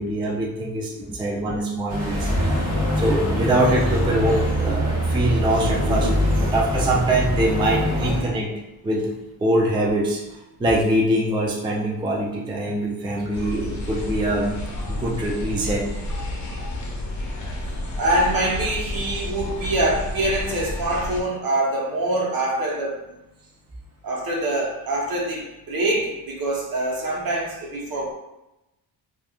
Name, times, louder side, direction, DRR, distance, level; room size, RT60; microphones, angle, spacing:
voice 1, 0.0-2.7 3.0-8.6 8.8-9.1 9.4-14.6 14.9-15.8, right 1 dB, 15° right, -2 dB, 0.4 m, -23 dB
sound 1, 1.9-8.2, equal, 40° right, 1.1 m, -23 dB
sound 2, 13.3-21.2, left 1 dB, 45° left, 0.7 m, -31 dB
voice 2, 18.0-22.9 24.0-28.1, right 1 dB, 60° right, -2 dB, 1.0 m, -24 dB
3.3 x 2.4 x 2.3 m, 0.94 s
cardioid pair, 105°, 41 cm